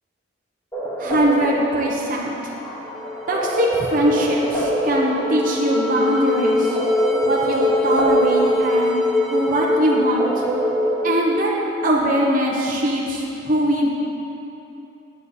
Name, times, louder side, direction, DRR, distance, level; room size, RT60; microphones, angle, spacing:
sound 1, 0.7-11.0, right 2 dB, 15° left, 2.0 m, -28 dB
voice 1, 1.0-2.3 3.3-6.8 7.2-10.5 11.0-11.5 11.8-13.9, right 1 dB, 45° right, -3 dB, 1.1 m, -21 dB
sound 2, 2.8-12.0, left 2 dB, ahead, 0.6 m, -23 dB
9.9 x 8.2 x 4.3 m, 2.9 s
head